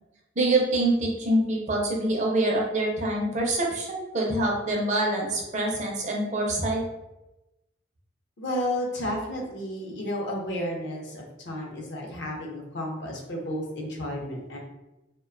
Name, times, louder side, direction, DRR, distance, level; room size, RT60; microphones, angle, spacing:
voice 1, 0.4-6.8, right 1 dB, 35° right, -1 dB, 0.5 m, -25 dB
voice 2, 8.4-14.6, left 1 dB, 65° left, -1 dB, 0.5 m, -32 dB
2.4 x 2.1 x 2.4 m, 0.97 s
head